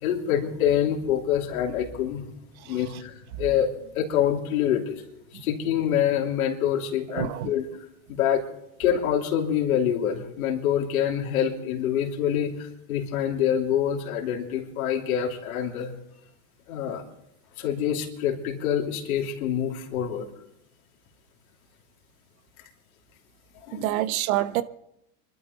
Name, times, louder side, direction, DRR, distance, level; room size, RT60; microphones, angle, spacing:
voice 1, 0.0-2.2 2.7-5.0 5.3-7.7 8.1-8.4 8.8-15.9 16.7-17.0 17.6-20.3 23.7-23.9, left 9 dB, 80° left, 3.1 m, -26 dB
voice 2, 7.1-7.5 23.7-24.6, right 14 dB, 75° right, 1.1 m, -26 dB
25.5 x 12.0 x 4.0 m
hypercardioid pair, 100°, 42 cm